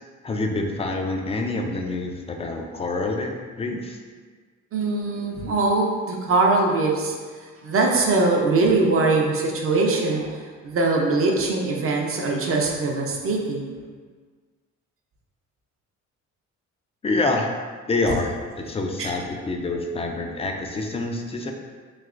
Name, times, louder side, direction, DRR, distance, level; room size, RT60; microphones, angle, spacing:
voice 1, 0.2-4.0 17.0-17.5 17.9-21.5, left 2 dB, 20° left, 3 dB, 0.3 m, -27 dB
voice 2, 4.7-7.1 7.6-13.7 19.0-19.1, right 3 dB, 50° right, 0 dB, 0.6 m, -22 dB
3.2 x 2.8 x 2.4 m, 1.5 s
cardioid pair, 90°, 30 cm